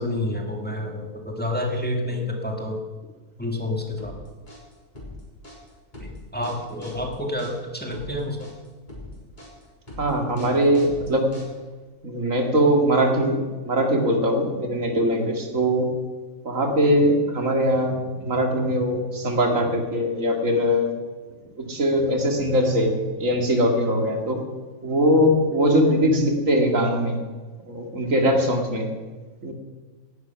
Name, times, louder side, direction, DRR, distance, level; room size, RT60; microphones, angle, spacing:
voice 1, 0.0-2.8 3.4-4.2 6.0-8.5, left 1 dB, 5° left, 1 dB, 1.9 m, -29 dB
sound 1, 4.0-11.8, left 1 dB, 30° left, 4.1 m, -41 dB
voice 2, 10.0-11.3 12.0-13.4 13.6-15.9 16.4-20.9 21.6-24.4 24.8-27.2 27.6-28.9 29.4-29.5, equal, 60° right, 3 dB, 2.7 m, -21 dB
17.5 x 11.0 x 5.9 m, 1.3 s
omnidirectional pair, 1.6 m